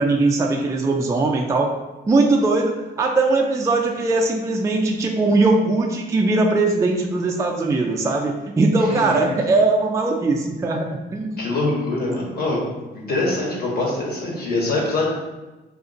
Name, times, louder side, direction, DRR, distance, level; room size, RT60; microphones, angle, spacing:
voice 1, 0.0-1.7 2.1-11.4, right 3 dB, 15° right, 0 dB, 0.3 m, -20 dB
voice 2, 8.9-9.2 11.4-12.6 12.9-15.0, left 2 dB, 50° left, -3 dB, 1.1 m, -24 dB
2.5 x 2.5 x 3.8 m, 1.1 s
cardioid pair, 90°, 20 cm